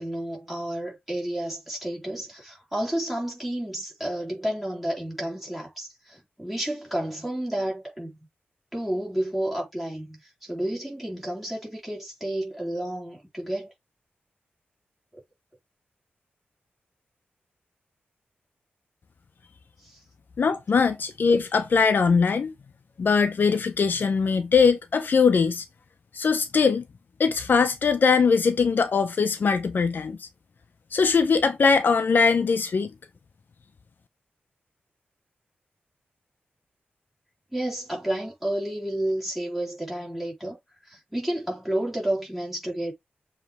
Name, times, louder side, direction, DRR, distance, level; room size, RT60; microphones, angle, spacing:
voice 1, 0.0-8.2 8.7-13.7 19.8-20.0 37.5-40.6 40.9-42.9, right 1 dB, 5° right, 3.9 m, -31 dB
voice 2, 20.4-22.5 23.0-25.7 26.1-26.8 27.2-30.3 30.9-32.9, left 5 dB, 55° left, 0.7 m, -21 dB
7.3 x 3.2 x 4.4 m
wide cardioid pair, 140°, 4 cm